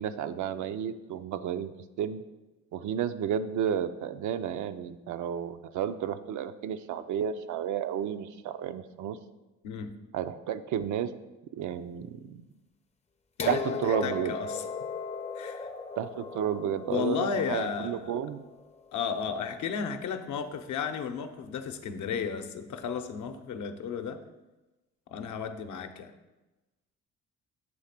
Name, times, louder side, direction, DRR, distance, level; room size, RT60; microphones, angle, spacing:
voice 1, 0.0-1.7 2.0-2.2 2.7-9.2 10.1-11.1 11.5-12.4 13.5-14.3 16.0-18.4, right 9 dB, 75° right, 10 dB, 0.5 m, -32 dB
voice 2, 13.4-14.6 15.3-15.7 16.9-18.2 18.9-24.2 25.1-26.1, left 6 dB, 70° left, 7 dB, 0.7 m, -33 dB
sound 1, 13.4-19.3 20.4-20.5, left 5 dB, 20° left, 0.5 m, -38 dB
7.7 x 3.2 x 5.8 m, 1.1 s
cardioid pair, 90°, 30 cm